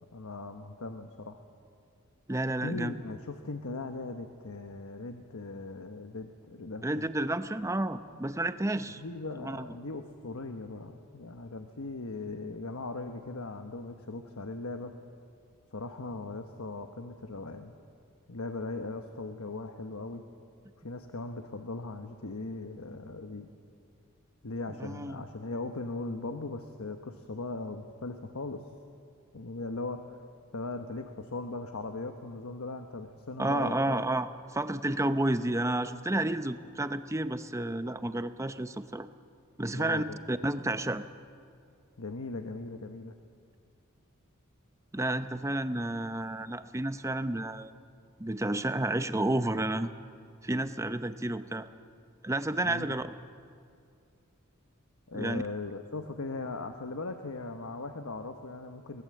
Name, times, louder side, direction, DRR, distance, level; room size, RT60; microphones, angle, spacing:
voice 1, 0.1-1.4 2.6-7.1 9.0-14.9 15.7-17.7 18.3-20.2 20.8-23.5 24.4-28.6 29.3-30.2 30.5-34.0 39.7-40.2 42.0-43.1 52.6-52.9 55.1-59.0, left 3 dB, 85° left, 6 dB, 1.1 m, -39 dB
voice 2, 2.3-2.9 6.8-9.0 9.4-9.7 24.8-25.2 33.4-39.1 39.6-41.0 44.9-47.7 48.2-49.9 50.4-51.7 52.2-53.0 55.1-55.4, right 1 dB, 15° right, 10 dB, 0.7 m, -31 dB
23.0 x 18.0 x 7.7 m, 2.3 s
head